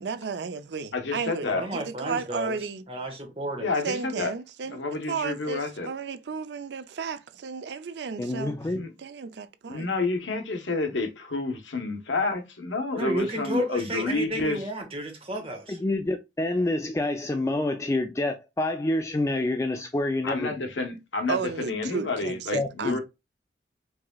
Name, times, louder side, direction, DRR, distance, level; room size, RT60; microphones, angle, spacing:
voice 1, 0.0-2.8 3.8-8.5 9.0-9.9 21.3-23.0, right 5 dB, 70° right, 0.4 m, -33 dB
voice 2, 0.9-1.6 3.6-4.3 4.7-5.9 8.7-8.9 9.7-14.6 20.2-23.0, left 3 dB, 90° left, 1.0 m, -29 dB
voice 3, 1.4-2.6 2.9-3.7 12.9-15.8, right 1 dB, 30° right, 1.4 m, -32 dB
voice 4, 8.2-8.8 15.7-20.5 22.5-23.0, left 2 dB, 15° left, 0.3 m, -27 dB
4.7 x 3.6 x 2.3 m
head